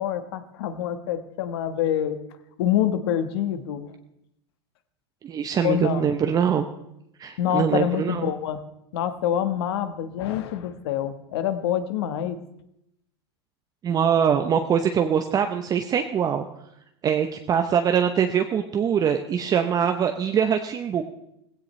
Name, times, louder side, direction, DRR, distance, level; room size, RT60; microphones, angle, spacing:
voice 1, 0.0-2.2 2.6-3.9 5.6-6.0 7.4-8.6 8.9-12.4, left 10 dB, 70° left, 10 dB, 1.3 m, -26 dB
voice 2, 5.2-6.7 7.2-8.3 13.8-16.5 17.0-21.0, right 8 dB, 25° right, 6 dB, 0.8 m, -23 dB
17.0 x 16.0 x 3.2 m, 0.81 s
supercardioid pair, 115°, 14 cm